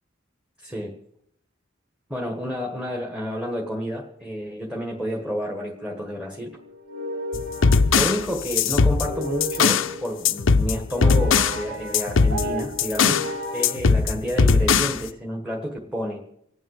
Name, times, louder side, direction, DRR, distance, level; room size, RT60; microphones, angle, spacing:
voice 1, 0.6-1.0 2.1-6.6 7.9-16.2, equal, 5° right, 1 dB, 1.4 m, -30 dB
sound 1, 5.7-13.7, equal, 70° right, 2.0 m, -34 dB
sound 2, 7.3-9.9 10.2-11.6 11.9-13.3 13.6-15.0, left 5 dB, 75° left, 0.6 m, -20 dB
26.0 x 9.0 x 4.9 m, 0.74 s
head